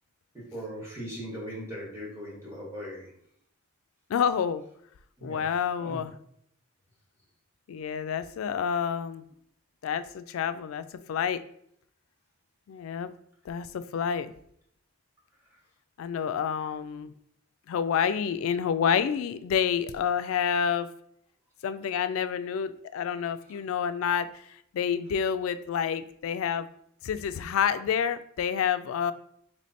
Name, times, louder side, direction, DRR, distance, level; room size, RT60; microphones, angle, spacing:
voice 1, 0.3-3.1 5.2-5.5 5.8-6.0, equal, 15° right, -6 dB, 1.4 m, -39 dB
voice 2, 4.1-4.6 5.2-6.1 7.7-9.2 9.8-11.4 12.7-13.1 13.5-14.3 16.0-17.1 17.7-20.9 21.6-26.7 27.0-29.1, left 7 dB, 90° left, 13 dB, 0.3 m, -28 dB
3.2 x 3.1 x 4.2 m, 0.68 s
head